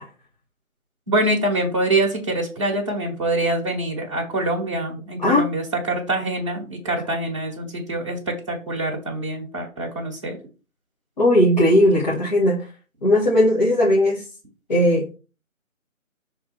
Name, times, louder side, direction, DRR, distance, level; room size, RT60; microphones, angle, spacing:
voice 1, 1.1-8.2 8.5-10.4, right 1 dB, 25° right, -2 dB, 1.3 m, -25 dB
voice 2, 11.2-12.7 13.0-14.2 14.7-15.2, left 1 dB, 30° left, -6 dB, 1.4 m, -17 dB
6.2 x 3.5 x 4.5 m, 0.33 s
figure-of-eight pair, 165°, 41 cm